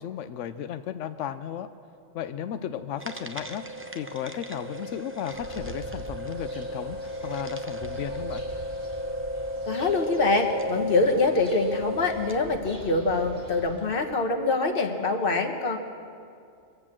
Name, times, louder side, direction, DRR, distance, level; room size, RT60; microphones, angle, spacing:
voice 1, 0.0-1.7 2.1-3.7 3.9-8.4, left 9 dB, 90° left, 10 dB, 0.9 m, -34 dB
sound 1, 3.0-12.5, equal, 15° right, 0.5 m, -34 dB
sound 2, 5.3-13.8, right 1 dB, 30° right, 3.9 m, -44 dB
voice 2, 9.7-15.8, left 3 dB, 50° left, 4 dB, 1.3 m, -24 dB
23.5 x 8.0 x 7.4 m, 2.4 s
omnidirectional pair, 1.2 m